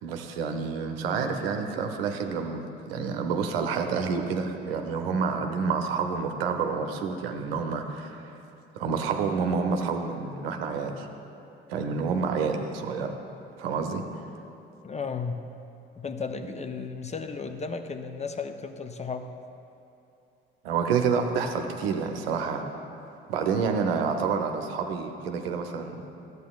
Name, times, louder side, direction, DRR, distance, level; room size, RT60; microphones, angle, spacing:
voice 1, 0.0-8.3 8.7-11.1 11.7-13.2 13.6-14.3 20.6-22.6 23.3-26.0, right 5 dB, 75° right, 5 dB, 0.8 m, -28 dB
voice 2, 14.8-15.5 16.0-19.3, left 5 dB, 20° left, 7 dB, 0.6 m, -34 dB
14.0 x 8.2 x 2.4 m, 2.8 s
figure-of-eight pair, 55°, 30 cm